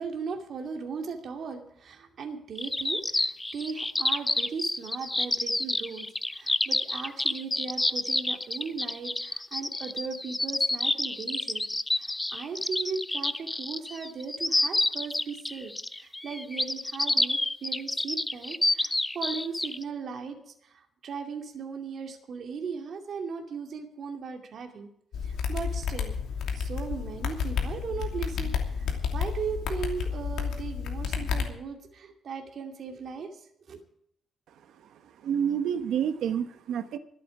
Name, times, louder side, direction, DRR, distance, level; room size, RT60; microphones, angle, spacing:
voice 1, 0.0-6.1 6.3-11.7 11.9-15.7 16.0-20.4 21.0-24.9 25.2-26.1 26.5-28.5 29.1-33.3 33.7-33.8, right 5 dB, 45° right, 3 dB, 2.5 m, -37 dB
sound 1, 2.6-19.8, left 2 dB, 10° left, 0.5 m, -28 dB
sound 2, 25.1-31.4, left 6 dB, 85° left, 2.7 m, -31 dB
voice 2, 35.2-37.0, right 8 dB, 80° right, 10 dB, 1.1 m, -28 dB
24.0 x 8.6 x 4.9 m, 0.71 s
cardioid pair, 180°, 0 cm